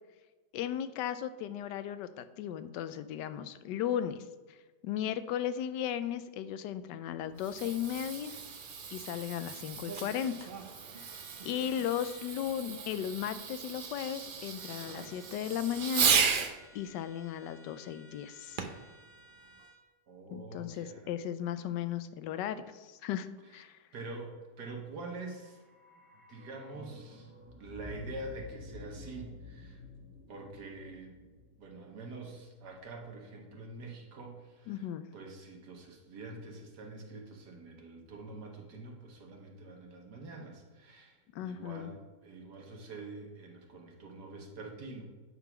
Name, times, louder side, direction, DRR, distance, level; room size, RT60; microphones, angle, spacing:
voice 1, 0.5-4.6 4.8-8.4 8.9-10.5 11.4-16.2 16.7-18.6 20.3-23.8 34.7-35.0 41.3-41.9, left 10 dB, 80° left, 12 dB, 1.2 m, -36 dB
Fireworks, 7.2-16.6 18.6-18.9 19.6-19.7, right 6 dB, 85° right, 0.4 m, -35 dB
sound 1, 10.1-10.3 10.9-12.3 14.5-15.3 15.6-19.8, equal, 65° left, 2.9 m, -59 dB
voice 2, 20.1-21.1 23.9-25.6 26.3-29.8 30.3-31.2 31.6-34.9 35.1-45.0, right 2 dB, 65° right, 1 dB, 1.9 m, -46 dB
sound 2, 25.2-33.2 33.4-33.5, left 2 dB, 5° right, 1.1 m, -51 dB
9.7 x 3.8 x 6.0 m, 1.3 s
omnidirectional pair, 1.9 m